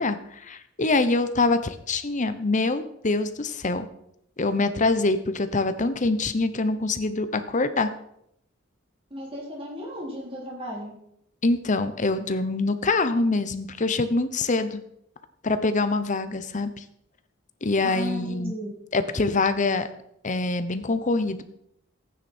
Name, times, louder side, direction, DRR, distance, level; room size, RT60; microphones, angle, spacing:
voice 1, 0.0-3.9 4.4-7.9 11.4-14.8 15.4-16.8 17.6-18.6 18.9-19.9 20.2-21.4, left 3 dB, 40° left, 11 dB, 0.9 m, -25 dB
voice 2, 9.1-10.9 17.8-18.7, left 1 dB, 30° right, -3 dB, 3.7 m, -35 dB
14.5 x 9.5 x 4.4 m, 0.75 s
head